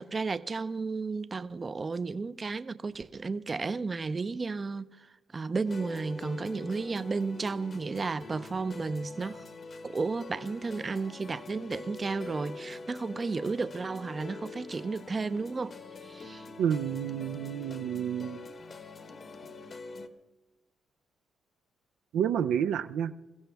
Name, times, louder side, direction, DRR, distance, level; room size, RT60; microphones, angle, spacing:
voice 1, 0.0-9.4 9.8-15.7 16.0-16.5, right 4 dB, 30° right, 0.6 m, -33 dB
sound 1, 5.6-20.1, left 3 dB, 45° left, 1.2 m, -44 dB
voice 2, 16.6-18.4 22.1-23.1, right 9 dB, 80° right, 0.5 m, -29 dB
22.0 x 15.5 x 3.5 m
cardioid pair, 90°, 0 cm